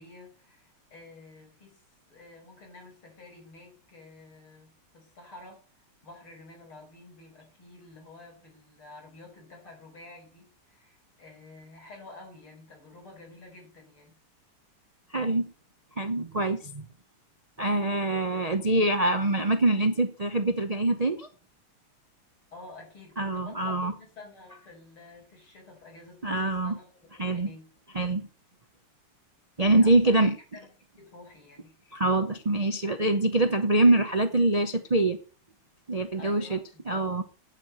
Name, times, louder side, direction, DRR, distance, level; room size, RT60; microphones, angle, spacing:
voice 1, 0.0-1.8 2.1-5.6 6.0-14.2 22.5-27.7 29.6-30.2 30.5-31.7 36.2-37.1, left 2 dB, 70° left, 0 dB, 6.8 m, -50 dB
voice 2, 15.1-15.5 16.0-16.9 17.6-21.3 23.2-23.9 26.2-26.8 27.2-27.5 27.9-28.3 29.6-30.4 31.9-35.2 35.9-36.6 36.9-37.2, right 2 dB, 45° right, 7 dB, 0.5 m, -24 dB
9.6 x 8.8 x 7.7 m, 0.39 s
omnidirectional pair, 2.4 m